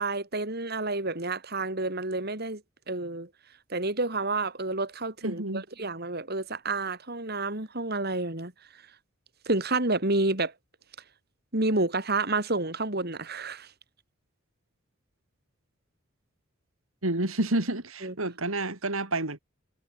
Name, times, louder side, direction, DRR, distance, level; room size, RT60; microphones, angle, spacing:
voice 1, 0.0-2.6 2.9-3.3 3.7-8.8 9.5-10.5 11.5-13.7 18.0-18.1, right 2 dB, 50° right, 3.7 m, -29 dB
voice 2, 5.2-5.6 17.0-19.4, right 2 dB, 85° right, 3.8 m, -29 dB
head